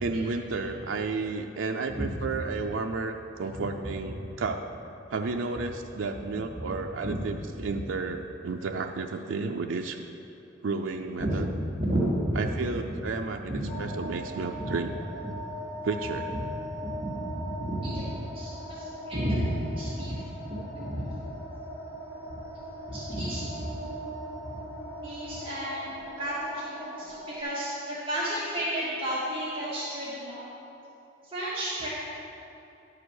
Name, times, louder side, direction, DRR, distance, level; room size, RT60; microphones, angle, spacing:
voice 1, 0.0-4.6 5.1-10.1 10.6-11.5 12.4-14.9 15.8-16.3, right 4 dB, 85° right, 3 dB, 0.4 m, -32 dB
voice 2, 11.2-12.9 13.5-13.7 14.2-14.7 16.3-16.6 16.8-21.1 22.9-23.7 24.4-24.6 25.0-30.5 31.2-31.9, equal, 30° right, -10 dB, 1.8 m, -32 dB
sound 1, 13.7-27.4, equal, 55° left, 2.1 m, -40 dB
11.5 x 4.9 x 6.5 m, 2.9 s
head